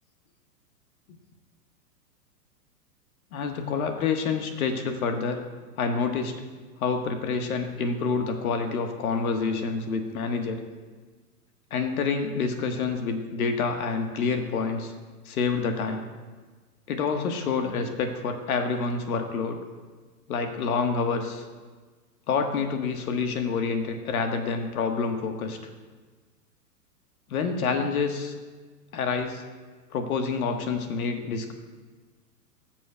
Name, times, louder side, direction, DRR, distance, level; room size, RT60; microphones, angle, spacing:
voice 1, 3.3-5.4 5.8-6.3 6.8-10.6 11.7-14.9 15.2-16.1 16.9-19.6 20.3-21.4 22.3-25.6 27.3-28.3 28.9-29.4 29.9-31.5, left 5 dB, 60° left, 5 dB, 1.5 m, -27 dB
19.5 x 7.4 x 2.3 m, 1.4 s
hypercardioid pair, 110°, 48 cm